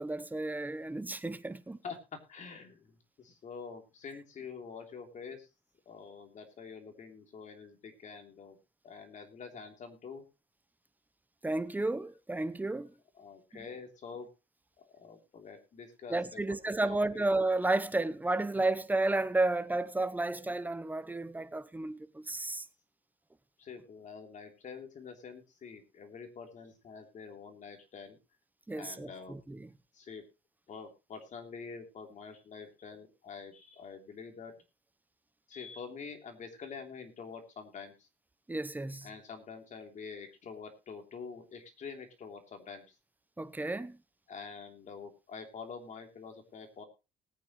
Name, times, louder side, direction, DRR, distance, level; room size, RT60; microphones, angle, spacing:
voice 1, 0.0-1.8 11.4-12.9 16.1-22.7 28.7-29.7 38.5-39.1 43.4-44.0, right 2 dB, 10° right, 0.9 m, -32 dB
voice 2, 2.3-5.5 5.8-8.6 8.8-10.2 13.1-14.3 14.8-17.2 23.6-28.2 28.7-29.4 29.9-30.2 30.7-34.5 35.5-38.1 39.0-42.9 44.3-46.8, left 5 dB, 45° left, 3.2 m, -46 dB
19.5 x 9.1 x 3.1 m
cardioid pair, 110°, 17 cm